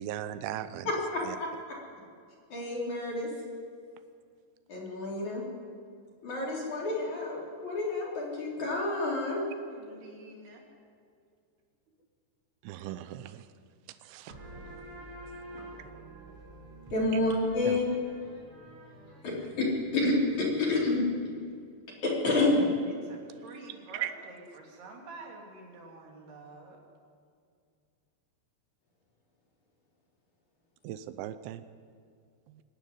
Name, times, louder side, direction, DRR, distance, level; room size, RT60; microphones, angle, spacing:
voice 1, 0.0-0.9 1.2-1.4 12.6-13.5 13.9-14.3 17.7-17.8 24.0-24.1 30.8-31.6 32.5-32.6, right 12 dB, 85° right, 3.0 m, -38 dB
voice 2, 0.8-1.2 2.5-3.3 4.7-5.4 6.2-9.4 16.9-17.8 19.2-19.3 19.9-21.0 22.0-22.7, left 2 dB, 45° left, 4.8 m, -29 dB
voice 3, 9.7-10.6 22.9-26.8, right 2 dB, 65° right, 4.9 m, -48 dB
sound 1, 14.3-21.6, right 1 dB, 30° right, 4.5 m, -48 dB
24.5 x 11.5 x 9.8 m
omnidirectional pair, 5.1 m